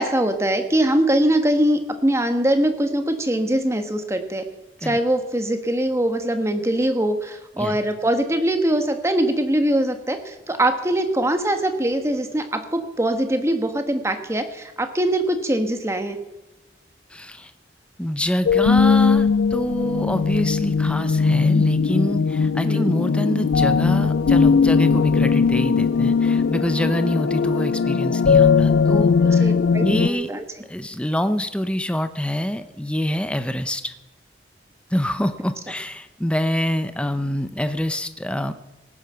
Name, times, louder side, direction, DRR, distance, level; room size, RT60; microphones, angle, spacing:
voice 1, 0.0-4.4 4.8-16.2 22.6-22.9 29.2-30.4, right 1 dB, 15° right, 7 dB, 1.3 m, -22 dB
voice 2, 17.1-17.5 18.0-30.3 30.7-33.9 34.9-38.5, equal, 5° left, 10 dB, 0.7 m, -26 dB
sound 1, 18.5-30.1, left 5 dB, 80° left, 0.4 m, -19 dB
18.0 x 9.8 x 5.7 m, 1.0 s
head